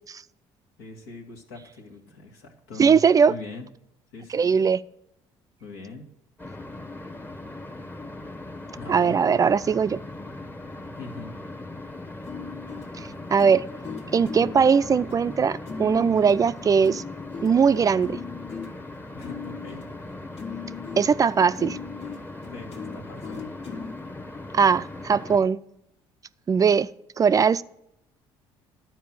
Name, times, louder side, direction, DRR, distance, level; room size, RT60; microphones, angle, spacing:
voice 1, 0.8-3.0 3.3-3.7 4.1-4.6 5.6-6.0 8.8-9.2 11.0-11.4 19.1-19.8 22.5-23.5, left 3 dB, 90° left, 1.7 m, -41 dB
voice 2, 2.8-3.3 4.3-4.8 8.9-10.0 13.0-13.7 14.1-17.0 17.4-18.2 21.0-21.8 24.5-25.6 26.5-26.9 27.2-27.6, right 6 dB, 30° right, 0.3 m, -20 dB
sound 1, 6.4-25.4, left 2 dB, 15° left, 0.9 m, -39 dB
sound 2, 12.2-24.0 24.7-24.8 25.3-25.5, left 5 dB, 65° left, 1.6 m, -39 dB
11.0 x 4.6 x 7.4 m
supercardioid pair, 75°, 11 cm